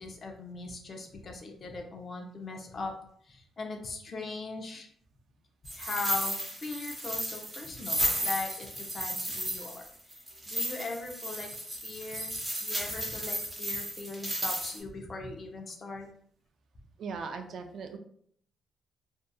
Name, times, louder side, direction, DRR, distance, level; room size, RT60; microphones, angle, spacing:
voice 1, 0.0-2.9 3.3-4.9 5.8-6.3 6.6-9.8 10.5-11.5 11.8-12.3 12.6-16.1, left 3 dB, 45° left, 2 dB, 0.5 m, -39 dB
sound 1, 5.7-14.8, right 1 dB, 15° right, 0.9 m, -34 dB
voice 2, 17.0-18.0, right 5 dB, 65° right, 6 dB, 0.3 m, -39 dB
2.6 x 2.3 x 2.3 m, 0.63 s
cardioid pair, 90°, 0 cm